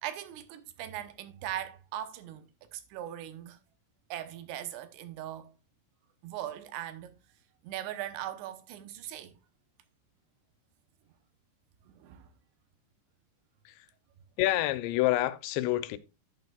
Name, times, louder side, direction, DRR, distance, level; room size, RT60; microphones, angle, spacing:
voice 1, 0.0-3.6 4.1-5.5 6.2-7.1 7.6-9.3 11.9-12.3, right 12 dB, 85° right, 3.2 m, -40 dB
voice 2, 14.4-16.0, left 16 dB, 85° left, 2.9 m, -28 dB
11.0 x 9.5 x 2.4 m
omnidirectional pair, 5.1 m